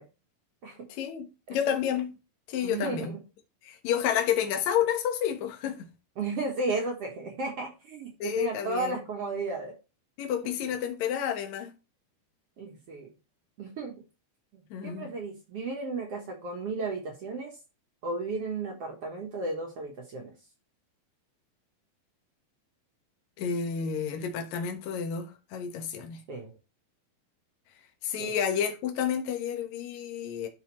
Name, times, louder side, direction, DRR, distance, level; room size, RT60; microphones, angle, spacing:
voice 1, 0.9-2.2 2.5-3.2 3.6-5.9 8.2-8.9 10.2-11.7 14.7-15.1 23.4-26.2 28.0-30.5, left 8 dB, 60° left, 2.1 m, -30 dB
voice 2, 2.6-3.2 6.2-9.7 12.6-13.1 13.6-14.0 14.8-17.6 18.0-20.3 26.3-26.5 28.2-28.4, right 3 dB, 65° right, 1.6 m, -34 dB
12.0 x 4.3 x 3.1 m
omnidirectional pair, 4.3 m